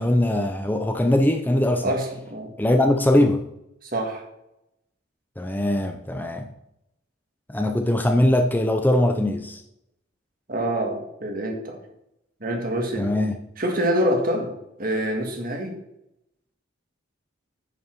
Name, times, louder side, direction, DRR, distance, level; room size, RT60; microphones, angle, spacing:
voice 1, 0.0-1.8 2.6-3.5 5.4-6.5 7.5-9.6 13.0-13.4, left 1 dB, 10° left, 5 dB, 0.5 m, -21 dB
voice 2, 1.8-2.5 3.8-4.2 10.5-11.8 12.4-13.1 13.6-14.5 14.8-15.8, equal, 45° right, 3 dB, 1.8 m, -26 dB
9.5 x 5.6 x 6.1 m, 0.83 s
head